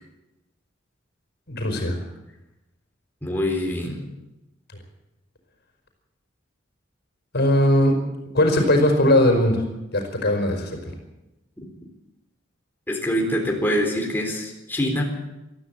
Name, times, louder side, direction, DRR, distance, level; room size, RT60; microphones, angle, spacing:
voice 1, 1.5-1.9 7.3-7.9 8.3-9.6 9.9-10.8, left 1 dB, 55° left, 4 dB, 5.0 m, -19 dB
voice 2, 3.2-4.0 12.9-15.0, equal, 10° left, 0 dB, 4.0 m, -24 dB
22.0 x 14.0 x 8.8 m, 0.97 s
head